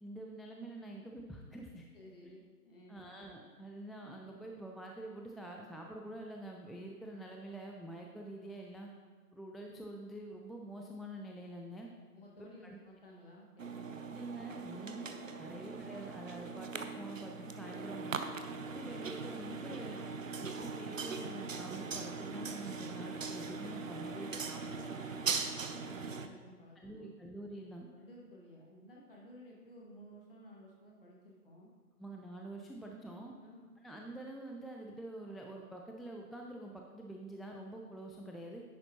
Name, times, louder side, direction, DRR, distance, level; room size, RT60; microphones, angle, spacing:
voice 1, 0.0-1.9 2.9-8.9 9.3-11.9 12.4-12.8 14.1-18.2 18.6-20.0 20.4-24.8 26.8-27.9 32.0-33.3 33.8-38.6, right 1 dB, ahead, 0 dB, 0.3 m, -47 dB
voice 2, 1.9-3.1 12.1-14.2 15.4-15.6 24.0-27.1 27.9-31.7 33.4-33.7, equal, 35° left, -3 dB, 1.8 m, -55 dB
sound 1, 13.6-26.3, right 4 dB, 55° right, 0.7 m, -40 dB
10.0 x 7.6 x 2.9 m, 1.5 s
hypercardioid pair, 170°, 47 cm